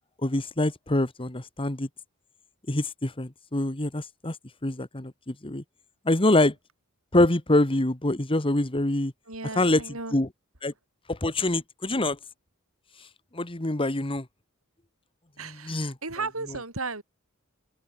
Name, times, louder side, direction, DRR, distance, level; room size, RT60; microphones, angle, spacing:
voice 1, 0.2-1.9 2.7-4.3 4.6-5.6 6.1-6.5 7.1-9.1 9.6-9.8 10.1-10.3 10.6-10.7 11.1-12.2 13.3-14.3 15.4-16.0, left 1 dB, 25° left, 1.7 m, -25 dB
voice 2, 9.3-10.1 15.4-17.0, right 3 dB, 90° right, 7.6 m, -35 dB
head